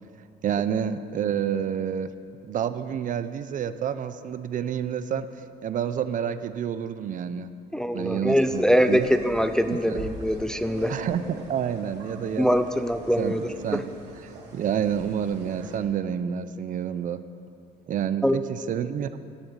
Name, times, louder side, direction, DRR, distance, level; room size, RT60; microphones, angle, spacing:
voice 1, 0.4-2.1 2.4-7.5 7.9-9.1 9.6-10.0 10.9-12.6 13.2-13.8 14.5-17.2 17.9-19.2, right 8 dB, 50° right, 12 dB, 0.6 m, -29 dB
voice 2, 7.7-10.9 12.4-13.8 18.2-18.4, equal, 5° left, 9 dB, 0.5 m, -23 dB
sound 1, 8.4-15.8, right 3 dB, 85° right, 2.4 m, -42 dB
11.5 x 8.9 x 8.2 m, 2.4 s
cardioid pair, 110°, 17 cm